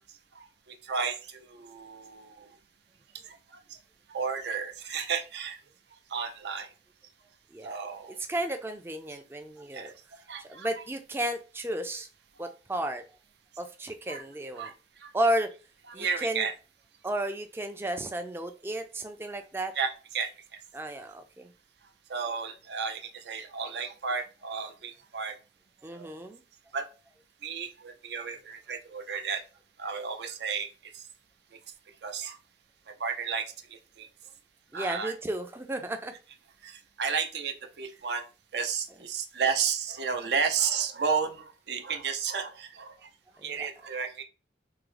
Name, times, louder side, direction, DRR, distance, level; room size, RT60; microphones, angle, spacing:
voice 1, 0.1-2.6 3.2-3.8 4.1-5.6 5.9-6.7 7.6-8.2 9.7-9.9 10.3-10.8 12.4-12.5 14.1-14.2 14.5-15.1 15.9-16.5 19.7-20.6 22.1-25.4 25.9-26.1 26.7-26.9 27.4-29.4 29.8-31.1 32.0-32.4 32.9-34.1 34.7-35.1 36.6-38.3 38.5-43.1 43.4-44.2, right 6 dB, 70° right, 0.5 m, -33 dB
voice 2, 8.3-9.9 10.5-12.1 12.4-13.0 13.6-14.7 15.1-15.5 15.9-16.4 17.0-19.7 20.7-21.5 25.8-26.4 34.7-36.1 43.6-43.7, right 1 dB, 15° right, 0.3 m, -33 dB
3.5 x 2.0 x 3.2 m
head